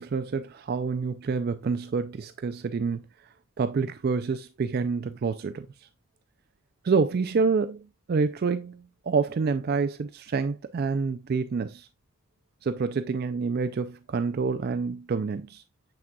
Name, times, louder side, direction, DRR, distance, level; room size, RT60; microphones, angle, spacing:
voice 1, 0.0-3.0 3.6-5.7 6.8-11.9 12.6-15.6, right 5 dB, 45° right, 0.3 m, -27 dB
7.3 x 6.2 x 2.2 m
head